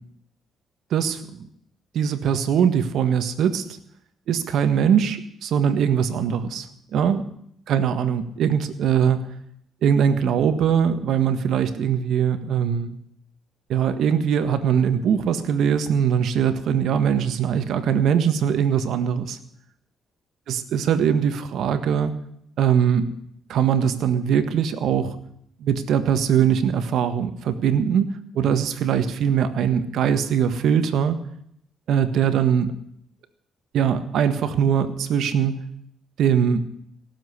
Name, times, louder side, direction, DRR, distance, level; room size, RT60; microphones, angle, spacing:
voice 1, 0.9-1.5 1.9-3.7 4.3-7.2 7.7-9.3 9.8-13.0 13.7-19.4 20.5-22.1 22.6-23.1 23.5-25.2 25.6-31.2 31.9-32.7 33.7-35.6 36.2-36.6, right 8 dB, 75° right, 10 dB, 1.6 m, -21 dB
17.5 x 7.5 x 9.9 m, 0.71 s
cardioid pair, 90°, 0 cm